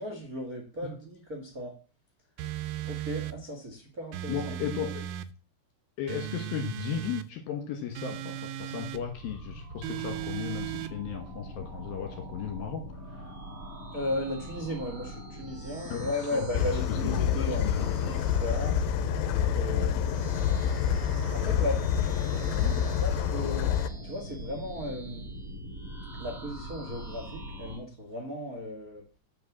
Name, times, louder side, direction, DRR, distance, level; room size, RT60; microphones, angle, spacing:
voice 1, 0.0-1.7 2.8-4.9 13.9-18.7 19.2-20.2 21.3-23.7 24.0-25.3 26.2-29.0, left 1 dB, 65° right, 1 dB, 0.8 m, -36 dB
sound 1, 2.4-3.4 4.1-5.3 6.1-7.3 8.0-9.0 9.8-10.9, right 12 dB, 90° right, 3.2 m, -36 dB
voice 2, 4.3-5.1 6.0-13.3 15.9-16.5 16.9-17.9 19.7-20.0, left 8 dB, 65° left, 5 dB, 2.5 m, -36 dB
sound 2, 8.9-27.8, right 1 dB, 35° right, 4.4 m, -42 dB
sound 3, 16.5-23.9, left 8 dB, 85° left, 2.5 m, -27 dB
9.3 x 5.6 x 7.3 m, 0.37 s
omnidirectional pair, 5.7 m